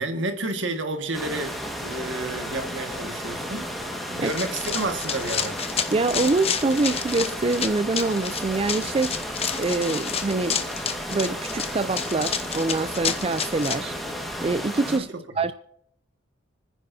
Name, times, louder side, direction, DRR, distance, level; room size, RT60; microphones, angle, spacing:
voice 1, 0.0-3.8 4.1-5.6 14.9-15.2, right 2 dB, 80° right, 1.8 m, -30 dB
sound 1, 1.1-15.0, equal, ahead, 1.6 m, -33 dB
Run, 4.3-13.8, left 7 dB, 35° left, 0.9 m, -30 dB
voice 2, 5.9-9.2 9.6-10.6 11.1-15.1 15.4-15.5, right 3 dB, 30° right, 0.4 m, -25 dB
29.5 x 10.0 x 2.7 m
head